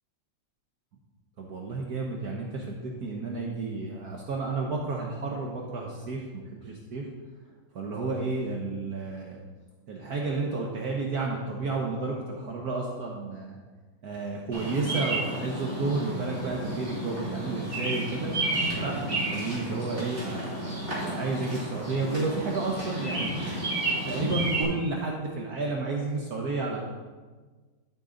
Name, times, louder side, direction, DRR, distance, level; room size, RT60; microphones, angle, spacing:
voice 1, 1.4-7.0 7.7-9.4 9.9-13.6 14.0-18.3 18.8-23.3 24.0-26.8, right 3 dB, 60° right, -1 dB, 1.5 m, -31 dB
Bird vocalization bird call bird song, 14.5-24.6, right 2 dB, 30° right, 3.3 m, -32 dB
12.0 x 6.8 x 3.9 m, 1.4 s
omnidirectional pair, 2.0 m